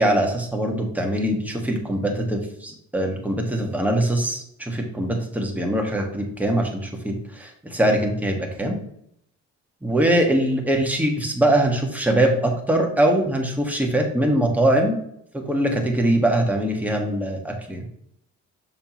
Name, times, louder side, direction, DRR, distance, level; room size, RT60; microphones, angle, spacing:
voice 1, 0.0-8.8 9.8-15.0 15.3-17.8, right 1 dB, 5° right, 1 dB, 1.6 m, -22 dB
6.5 x 5.9 x 3.0 m, 0.73 s
cardioid pair, 90°, 30 cm